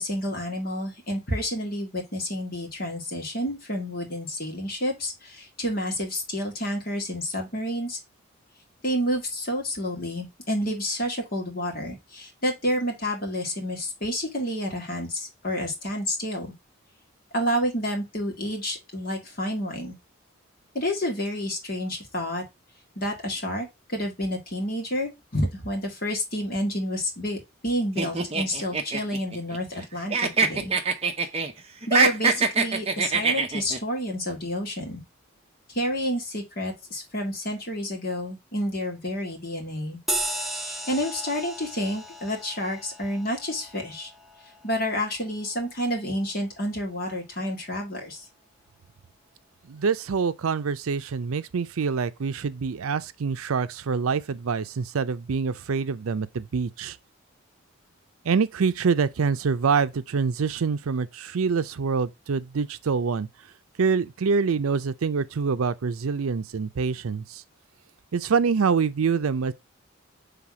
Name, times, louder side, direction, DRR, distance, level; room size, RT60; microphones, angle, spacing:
voice 1, 0.0-8.0 8.8-16.5 17.3-20.0 20.7-22.5 23.0-30.7 31.9-35.0 35.7-40.0 40.6-44.1 44.6-48.2, equal, 45° left, 2.0 m, -29 dB
sound 1, 28.0-29.8 30.1-31.5 31.8-33.8, right 4 dB, 30° right, 0.8 m, -24 dB
sound 2, 40.1-45.0, right 1 dB, ahead, 0.5 m, -35 dB
voice 2, 49.7-57.0 58.2-63.3 63.8-67.4 68.1-69.5, right 5 dB, 85° right, 0.5 m, -25 dB
5.8 x 3.5 x 4.7 m
head